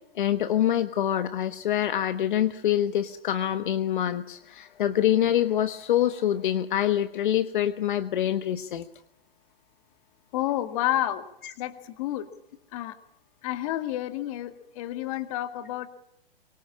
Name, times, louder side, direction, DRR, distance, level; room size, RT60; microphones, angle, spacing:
voice 1, 0.1-8.8, left 11 dB, 55° left, 10 dB, 1.3 m, -25 dB
voice 2, 10.3-11.2 11.6-12.3 12.7-13.0 13.4-15.9, left 13 dB, 35° left, 9 dB, 2.1 m, -30 dB
24.0 x 22.5 x 8.6 m, 0.74 s
hypercardioid pair, 160°, 29 cm